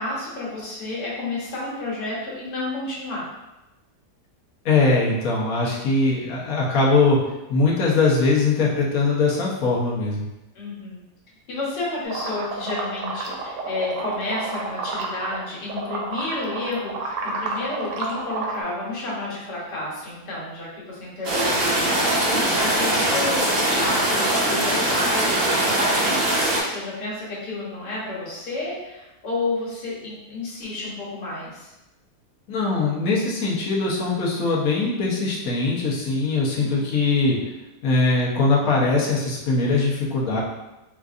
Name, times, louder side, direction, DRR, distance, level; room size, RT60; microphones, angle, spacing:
voice 1, 0.0-3.3 10.5-11.0 11.5-22.2 22.6-31.7, left 2 dB, 80° left, -6 dB, 1.7 m, -31 dB
voice 2, 4.6-7.2 7.5-10.3 32.5-37.4 37.8-40.4, left 3 dB, 60° left, -4 dB, 1.1 m, -21 dB
sound 1, 12.1-15.4 15.7-18.6, right 3 dB, 85° right, 1.2 m, -30 dB
sound 2, 21.2-26.6, right 1 dB, 50° right, 0.8 m, -21 dB
4.5 x 2.5 x 2.4 m, 0.99 s
omnidirectional pair, 1.8 m